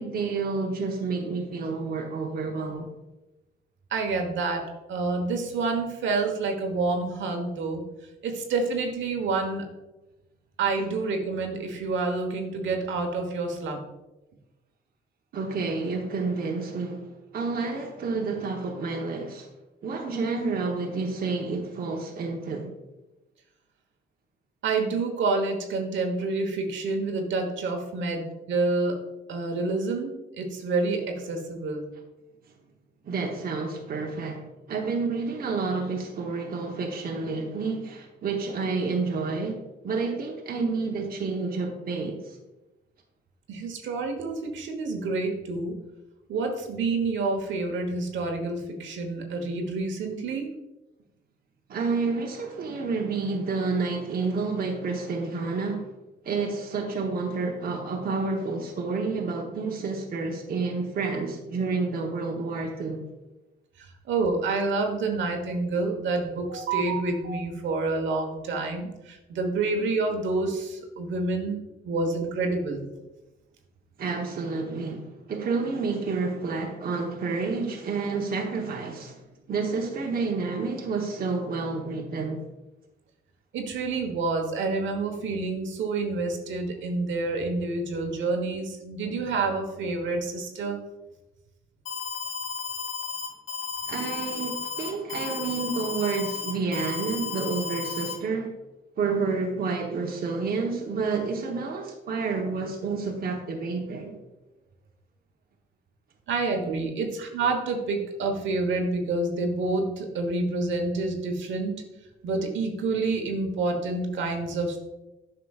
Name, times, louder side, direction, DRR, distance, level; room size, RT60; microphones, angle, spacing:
voice 1, 0.0-2.9 15.3-17.1 17.3-19.5 19.8-22.7 33.0-39.6 39.8-42.4 51.7-55.9 56.2-63.0 74.0-79.2 79.5-82.4 93.9-98.5 99.0-104.1, right 4 dB, 50° right, 1.0 m, -29 dB
voice 2, 3.9-4.6 4.9-7.8 8.2-9.6 10.6-13.8 24.6-29.0 29.3-31.9 43.5-45.8 46.3-50.5 63.8-72.8 83.5-90.8 106.3-111.8 112.2-114.8, right 3 dB, 70° right, 1.1 m, -28 dB
Alarm, 91.9-98.1, left 5 dB, 80° left, 1.1 m, -33 dB
8.4 x 5.8 x 2.4 m
cardioid pair, 90°, 20 cm